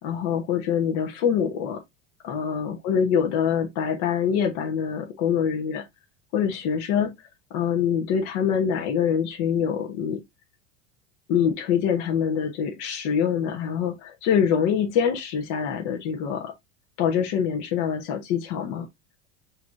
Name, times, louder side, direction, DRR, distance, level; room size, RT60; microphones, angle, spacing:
voice 1, 0.0-1.8 2.2-5.8 6.3-7.1 7.5-10.2 11.3-16.5 17.0-18.9, left 7 dB, 55° left, 1.2 m, -25 dB
6.1 x 3.2 x 2.6 m
hypercardioid pair, 100°, 35 cm